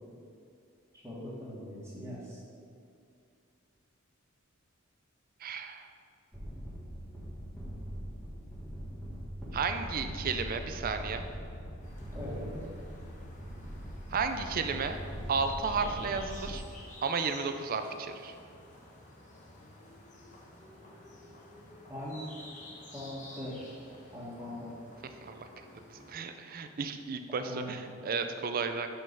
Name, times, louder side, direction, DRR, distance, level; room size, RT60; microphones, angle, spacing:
voice 1, 0.9-2.4 12.1-12.5 21.9-22.2 22.9-23.6 24.1-24.7 27.4-27.9, left 1 dB, 15° right, -7 dB, 1.8 m, -41 dB
voice 2, 5.4-5.8 9.5-11.2 14.1-15.0 15.3-16.6 17.0-18.3 25.2-25.5 26.1-28.9, right 5 dB, 45° right, 8 dB, 0.4 m, -33 dB
sound 1, 6.3-16.6, equal, ahead, 1.1 m, -41 dB
Spring Morning Suburbs Residental Zone, 11.8-26.1, left 1 dB, 40° left, 1.1 m, -52 dB
5.6 x 5.2 x 5.4 m, 2.4 s
head